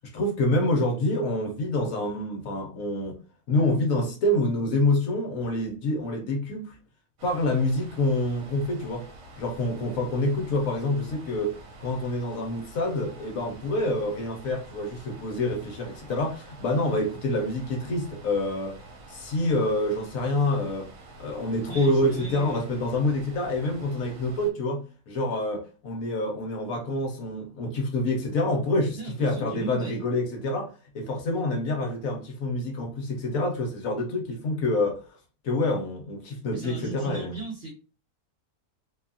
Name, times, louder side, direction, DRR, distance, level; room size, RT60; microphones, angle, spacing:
voice 1, 0.1-3.2 3.5-6.7 7.2-9.1 9.4-18.8 19.1-20.9 21.2-35.0 35.4-37.4, left 1 dB, 65° left, 1.0 m, -27 dB
sound 1, 7.2-24.5, right 2 dB, 70° right, 1.2 m, -47 dB
voice 2, 21.7-22.6 29.0-30.0 36.5-37.7, right 3 dB, 50° right, 0.8 m, -37 dB
2.7 x 2.2 x 2.4 m
omnidirectional pair, 1.7 m